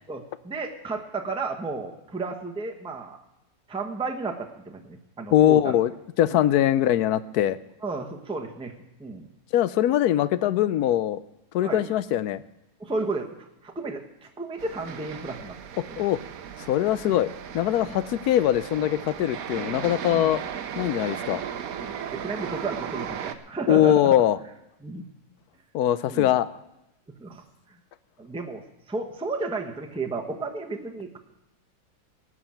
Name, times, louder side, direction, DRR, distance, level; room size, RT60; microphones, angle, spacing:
voice 1, 0.1-3.2 3.7-5.8 6.2-6.4 7.8-8.7 9.0-9.3 11.6-11.9 12.8-13.4 13.6-15.6 15.9-16.0 17.1-17.2 17.8-18.0 20.1-20.4 21.8-24.2 24.8-25.1 26.0-26.3 27.1-27.8 28.2-31.2, right 3 dB, 5° right, 3 dB, 0.9 m, -33 dB
voice 2, 5.3-5.9 6.2-7.6 9.5-11.2 11.5-12.4 15.8-16.2 16.7-20.4 20.8-21.4 23.7-24.4 25.7-26.5, left 12 dB, 70° left, 16 dB, 0.9 m, -22 dB
sound 1, 14.6-23.3, right 8 dB, 60° right, 1.1 m, -36 dB
17.5 x 6.4 x 8.9 m, 0.90 s
omnidirectional pair, 2.1 m